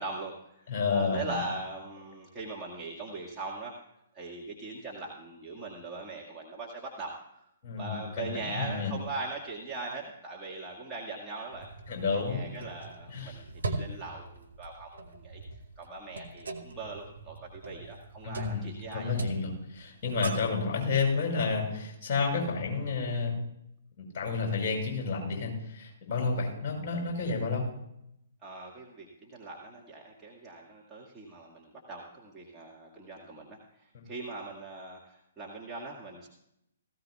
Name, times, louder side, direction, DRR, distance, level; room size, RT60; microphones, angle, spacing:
voice 1, 0.0-3.8 4.1-7.4 7.8-11.7 12.1-15.4 15.8-19.1 28.4-36.3, right 3 dB, 10° right, -5 dB, 1.7 m, -40 dB
voice 2, 0.7-1.4 7.6-8.9 11.9-12.4 13.1-13.4 18.2-18.7 18.9-23.4 24.0-27.7, left 4 dB, 30° left, 0 dB, 5.6 m, -30 dB
sound 1, 11.5-20.6, right 3 dB, 70° right, 1.4 m, -41 dB
17.5 x 15.5 x 2.3 m, 0.80 s
figure-of-eight pair, 125°, 0 cm